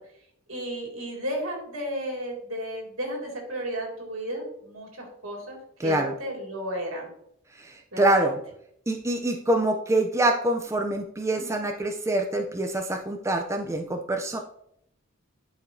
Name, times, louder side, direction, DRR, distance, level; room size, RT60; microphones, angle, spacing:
voice 1, 0.5-5.6 5.8-7.1 7.9-8.3, equal, 85° right, 0 dB, 2.4 m, -33 dB
voice 2, 5.8-6.1 7.6-8.4 8.9-14.4, right 1 dB, 15° right, 3 dB, 0.5 m, -25 dB
11.0 x 4.9 x 2.7 m, 0.72 s
head